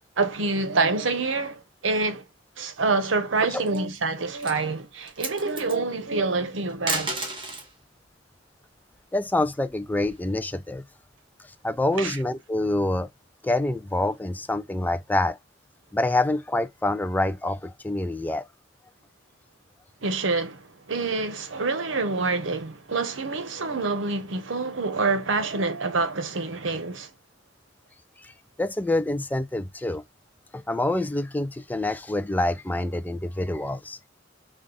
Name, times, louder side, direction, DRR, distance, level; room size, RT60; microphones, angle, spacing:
voice 1, 0.2-2.2 2.6-7.1 11.9-12.2 20.0-27.1, right 3 dB, 75° right, 0.9 m, -26 dB
sound 1, 3.5-4.0 4.4-4.6 5.0-5.8 6.7-7.7 9.2-10.4, right 3 dB, 25° right, 1.3 m, -32 dB
voice 2, 9.1-10.8 11.6-13.1 13.4-15.4 15.9-18.4 28.6-30.0 30.5-34.0, left 2 dB, 10° left, 0.3 m, -26 dB
5.3 x 2.4 x 3.7 m
head